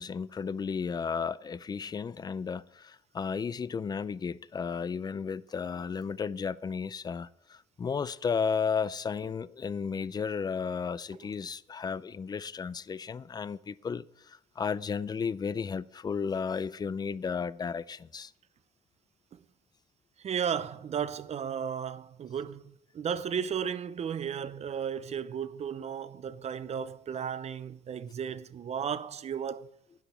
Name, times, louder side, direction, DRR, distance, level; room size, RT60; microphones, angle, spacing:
voice 1, 0.0-18.3, left 6 dB, 25° left, 0.4 m, -33 dB
voice 2, 20.2-29.7, right 7 dB, 40° right, 0.7 m, -34 dB
12.0 x 10.0 x 4.3 m
cardioid pair, 110°, 17 cm